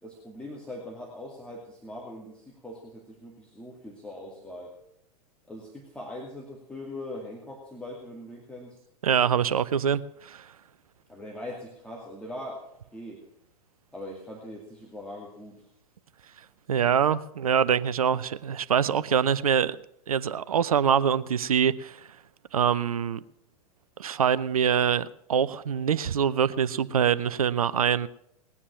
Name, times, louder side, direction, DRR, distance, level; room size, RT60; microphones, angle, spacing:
voice 1, 0.0-4.7 5.5-8.8 11.1-12.6 12.9-13.2 13.9-15.7, left 1 dB, 5° left, 2.4 m, -41 dB
voice 2, 9.0-10.4 16.7-19.8 20.1-22.0 22.5-23.2 24.0-28.1, right 8 dB, 65° right, 0.6 m, -24 dB
19.0 x 9.8 x 6.0 m
figure-of-eight pair, 95°, 19 cm